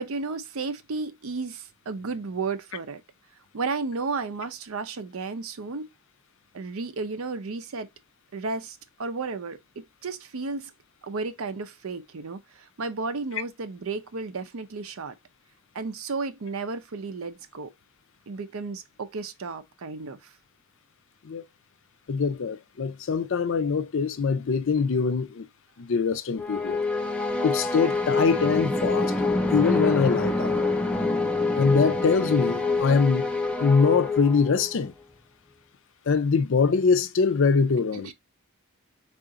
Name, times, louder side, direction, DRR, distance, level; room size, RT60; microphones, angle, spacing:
voice 1, 0.0-3.0 3.5-5.9 6.5-7.9 8.3-10.7 11.0-15.2 15.7-17.7 18.3-20.3 37.9-38.1, right 4 dB, 70° right, 0.6 m, -33 dB
voice 2, 22.1-25.5 25.8-26.8 27.4-29.1 29.5-30.7 31.6-33.3 33.6-34.9 36.1-38.1, left 5 dB, 60° left, 0.5 m, -23 dB
sound 1, 26.4-34.8, left 3 dB, 5° left, 0.5 m, -26 dB
3.7 x 2.5 x 3.8 m
head